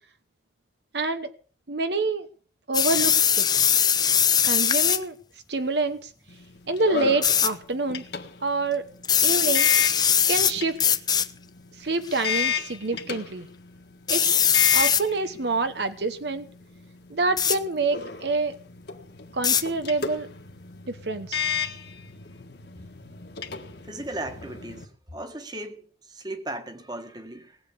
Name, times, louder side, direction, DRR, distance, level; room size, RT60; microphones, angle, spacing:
voice 1, 0.9-1.3 1.7-2.3 2.7-3.5 4.4-5.2 5.5-6.1 6.7-8.0 8.4-8.8 9.2-9.7 10.3-10.9 11.8-13.5 14.1-14.4 14.7-16.5 17.1-18.6 19.3-20.3 20.9-21.4, right 3 dB, 65° right, 1.0 m, -27 dB
sound 1, 2.7-5.0 7.2-7.5 9.0-10.5 10.8-11.3 12.1-12.4 14.1-15.0 17.4-17.6 19.4-19.6, left 8 dB, 20° left, 0.7 m, -21 dB
sound 2, 6.3-24.8, left 7 dB, 60° left, 1.6 m, -34 dB
voice 2, 23.8-27.6, right 1 dB, 20° right, 1.7 m, -37 dB
19.0 x 8.5 x 7.1 m
head